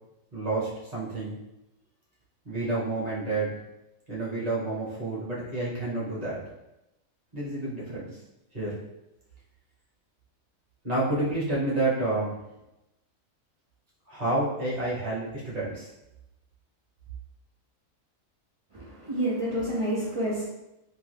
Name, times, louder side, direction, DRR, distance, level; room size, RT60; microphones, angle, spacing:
voice 1, 0.3-1.4 2.4-3.6 4.1-6.4 7.3-8.2 8.5-8.8 10.8-12.3 14.1-15.9, right 2 dB, 30° right, -7 dB, 1.0 m, -29 dB
voice 2, 18.7-20.4, right 1 dB, 55° right, -7 dB, 0.3 m, -29 dB
2.6 x 2.3 x 3.2 m, 0.91 s
omnidirectional pair, 1.4 m